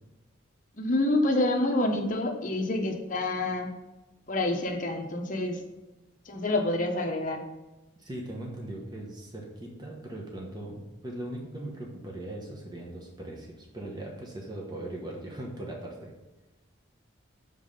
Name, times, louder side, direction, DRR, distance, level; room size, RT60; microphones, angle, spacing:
voice 1, 0.8-3.7 4.3-5.6 6.3-7.4, left 2 dB, 40° left, 3 dB, 0.8 m, -27 dB
voice 2, 8.0-16.1, right 1 dB, 20° right, -2 dB, 1.0 m, -39 dB
7.0 x 3.7 x 5.4 m, 1.1 s
head